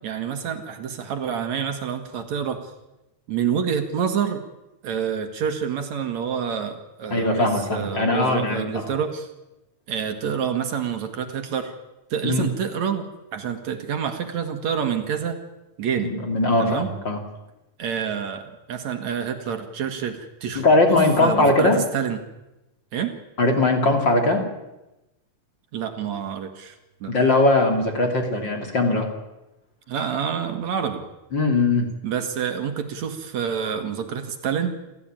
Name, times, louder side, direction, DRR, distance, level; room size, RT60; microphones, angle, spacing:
voice 1, 0.0-2.7 3.3-4.4 4.8-9.3 9.9-11.7 12.1-13.1 13.3-15.4 15.8-16.1 16.6-16.9 17.8-22.2 22.9-23.1 25.7-26.8 27.0-27.1 29.9-31.0 32.0-34.7, right 7 dB, 65° right, 6 dB, 2.8 m, -27 dB
voice 2, 7.1-8.9 12.2-12.5 16.0-17.2 20.5-21.8 23.4-24.4 27.1-29.1 31.3-31.9, left 2 dB, 35° left, 3 dB, 3.3 m, -20 dB
28.5 x 14.5 x 8.9 m, 0.98 s
omnidirectional pair, 3.6 m